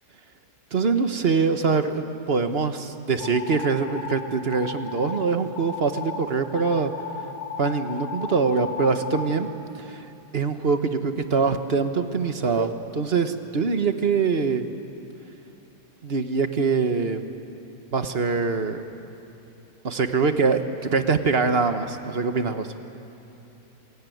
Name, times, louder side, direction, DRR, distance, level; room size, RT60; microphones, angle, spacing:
voice 1, 0.7-6.9 7.6-9.5 9.8-10.1 10.3-14.7 16.0-17.2 17.9-18.8 19.8-20.6 20.9-22.7, right 4 dB, 40° right, 8 dB, 1.3 m, -23 dB
sound 1, 3.2-4.1 4.5-5.2 5.5-6.2 6.5-9.3, left 6 dB, 25° left, 4.1 m, -34 dB
27.0 x 22.0 x 9.3 m, 3.0 s
omnidirectional pair, 1.8 m